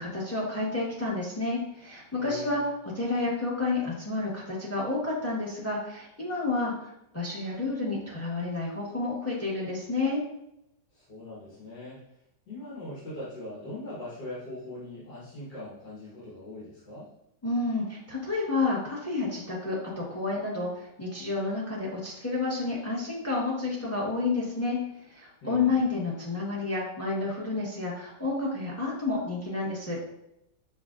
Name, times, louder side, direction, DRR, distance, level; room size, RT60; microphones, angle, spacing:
voice 1, 0.0-10.2 17.4-24.8 25.1-30.0, left 3 dB, 10° left, -5 dB, 0.7 m, -30 dB
voice 2, 2.2-2.7 10.9-12.0 12.5-17.1 25.4-25.8, left 1 dB, 70° left, -8 dB, 1.8 m, -41 dB
6.4 x 2.6 x 2.4 m, 0.81 s
omnidirectional pair, 1.9 m